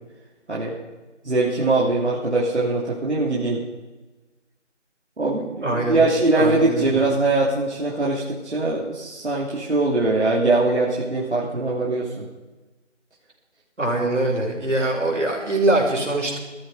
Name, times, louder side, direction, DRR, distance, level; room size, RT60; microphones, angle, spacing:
voice 1, 1.2-3.6 5.2-12.3, right 2 dB, 65° right, -6 dB, 3.1 m, -22 dB
voice 2, 5.6-6.0 6.3-7.0 13.8-16.4, right 2 dB, 85° right, -1 dB, 5.8 m, -23 dB
14.5 x 14.0 x 5.0 m, 1.2 s
figure-of-eight pair, 180°, 36 cm